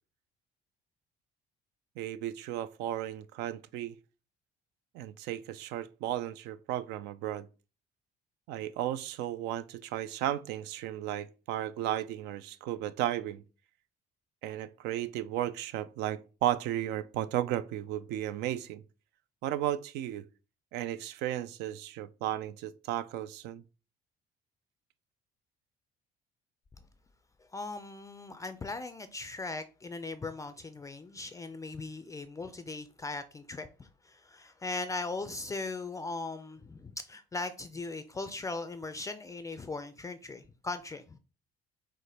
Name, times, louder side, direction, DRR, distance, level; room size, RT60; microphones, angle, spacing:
voice 1, 2.0-4.0 4.9-7.5 8.5-13.4 14.4-18.8 19.4-20.3 20.7-23.6, right 12 dB, 85° right, 0.4 m, -34 dB
voice 2, 27.4-41.2, left 3 dB, 20° left, 0.3 m, -39 dB
4.8 x 2.1 x 4.1 m
cardioid pair, 110°, 17 cm